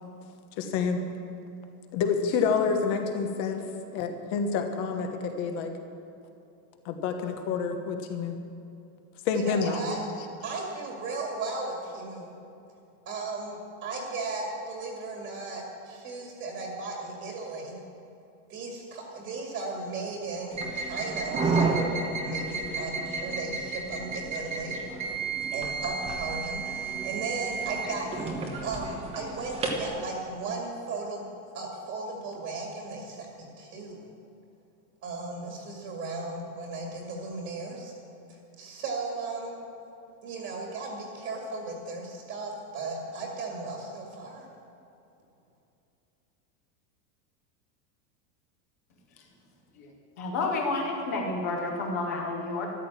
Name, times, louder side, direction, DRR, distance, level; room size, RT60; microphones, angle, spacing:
voice 1, 0.6-1.0 1.9-3.6 3.9-5.7 6.8-8.4 9.2-9.8, left 5 dB, 30° left, 6 dB, 1.2 m, -28 dB
voice 2, 9.3-10.0 10.4-12.3 13.1-17.8 18.5-24.8 25.5-31.2 31.5-34.1 35.0-37.9 38.3-39.5 40.2-44.5, right 3 dB, 30° right, 0 dB, 2.2 m, -36 dB
sound 1, 20.5-29.9, right 4 dB, 10° right, 1.0 m, -31 dB
voice 3, 50.2-52.7, left 3 dB, 10° left, 1 dB, 0.3 m, -30 dB
13.5 x 12.5 x 7.3 m, 2.7 s
supercardioid pair, 180°, 48 cm